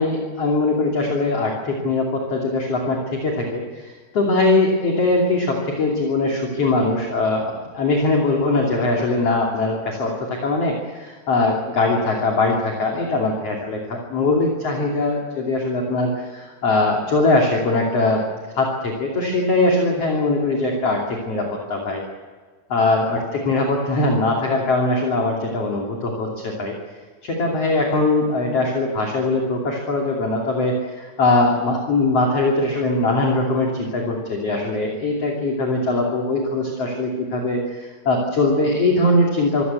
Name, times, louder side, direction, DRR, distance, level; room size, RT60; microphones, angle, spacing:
voice 1, 0.0-18.2 18.5-22.0 22.7-26.7 27.2-39.6, left 2 dB, 40° left, 0 dB, 3.2 m, -21 dB
25.5 x 16.5 x 8.2 m, 1.5 s
omnidirectional pair, 5.2 m